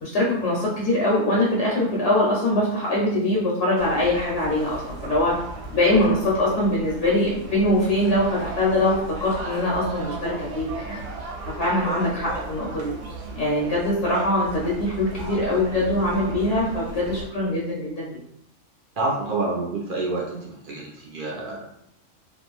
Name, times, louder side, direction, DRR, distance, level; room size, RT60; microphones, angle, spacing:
voice 1, 0.0-5.4 5.7-11.0 11.6-12.9 13.4-18.1, left 1 dB, 70° left, -5 dB, 0.9 m, -23 dB
sound 1, 3.8-17.2, right 3 dB, 75° right, 0.9 m, -36 dB
voice 2, 19.0-21.7, right 2 dB, 55° right, -3 dB, 0.6 m, -28 dB
2.5 x 2.1 x 3.0 m, 0.75 s
omnidirectional pair, 1.3 m